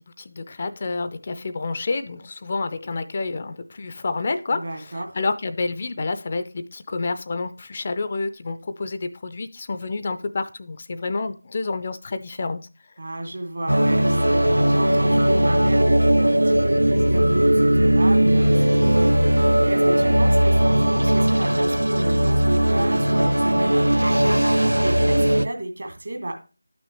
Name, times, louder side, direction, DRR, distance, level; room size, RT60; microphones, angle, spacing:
voice 1, 0.2-12.6, left 3 dB, 35° left, 0.5 m, -29 dB
voice 2, 4.5-5.2 13.0-26.4, right 1 dB, 60° right, 2.5 m, -32 dB
sound 1, 13.7-25.5, right 1 dB, 85° right, 0.5 m, -18 dB
11.5 x 6.2 x 3.0 m
figure-of-eight pair, 165°, 0 cm